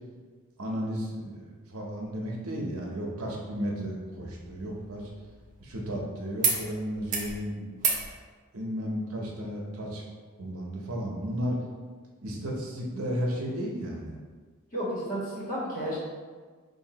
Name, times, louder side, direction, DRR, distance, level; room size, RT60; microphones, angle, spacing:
voice 1, 0.6-5.0 5.6-7.7 8.5-10.0 10.4-11.6 12.2-14.2, equal, 85° right, -1 dB, 0.8 m, -33 dB
sound 1, 4.2-6.0 6.4-6.6 6.9-7.3 7.8-8.1 9.4-9.5, right 5 dB, 35° right, 0.6 m, -31 dB
voice 2, 14.7-16.0, equal, 40° left, -7 dB, 1.4 m, -32 dB
4.9 x 2.6 x 2.8 m, 1.5 s
head